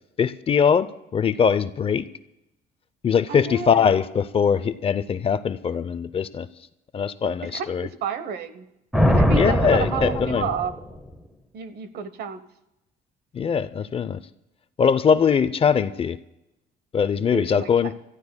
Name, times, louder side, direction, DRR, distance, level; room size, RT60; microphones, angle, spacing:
voice 1, 0.2-2.1 3.0-6.5 6.9-7.9 9.3-10.5 13.3-14.2 14.8-16.2 16.9-17.9, left 7 dB, 35° left, 14 dB, 0.6 m, -21 dB
voice 2, 3.3-3.9 7.4-8.7 9.1-10.7 11.5-12.4 17.3-17.9, right 7 dB, 70° right, 12 dB, 1.1 m, -31 dB
Thunder, 8.9-11.1, equal, ahead, 1.2 m, -21 dB
28.5 x 14.0 x 2.2 m, 0.90 s
cardioid pair, 110°, 17 cm